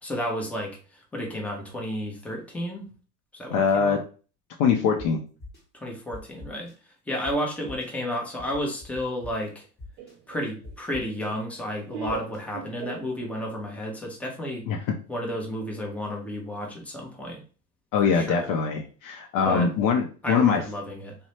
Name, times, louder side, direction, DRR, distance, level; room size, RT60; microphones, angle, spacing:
voice 1, 0.0-2.9 3.3-4.0 5.7-6.7 7.1-9.7 10.3-14.7 15.1-17.4 18.0-18.5 19.5-19.7 20.2-21.2, equal, 5° left, 0 dB, 0.6 m, -32 dB
voice 2, 3.5-4.0 4.6-5.2 14.7-14.8 17.9-20.6, left 6 dB, 45° left, 3 dB, 0.5 m, -23 dB
sound 1, 5.0-5.1 5.4-5.6 6.1-6.7 7.2-7.3 7.7-7.9 8.4-9.3 9.8-10.1 10.6-11.3 12.0-12.4, left 3 dB, 20° left, 1.1 m, -42 dB
Laughter, 10.0-13.6, right 6 dB, 60° right, 0.7 m, -40 dB
2.6 x 2.1 x 3.0 m, 0.38 s
hypercardioid pair, 90°, 47 cm